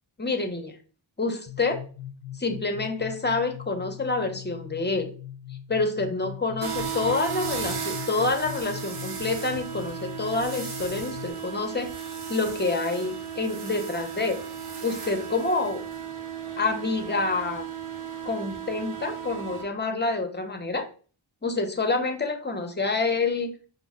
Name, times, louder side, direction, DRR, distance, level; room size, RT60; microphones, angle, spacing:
voice 1, 0.2-0.8 1.2-1.8 2.4-5.1 5.7-14.4 14.8-15.8 16.6-17.7 18.2-20.9 21.4-23.5, left 3 dB, 20° left, 7 dB, 0.6 m, -27 dB
sound 1, 1.5-11.3, left 11 dB, 70° left, 0.5 m, -41 dB
sound 2, 6.6-19.6, right 7 dB, 85° right, 0.8 m, -35 dB
5.1 x 2.1 x 3.5 m, 0.40 s
wide cardioid pair, 50°, 49 cm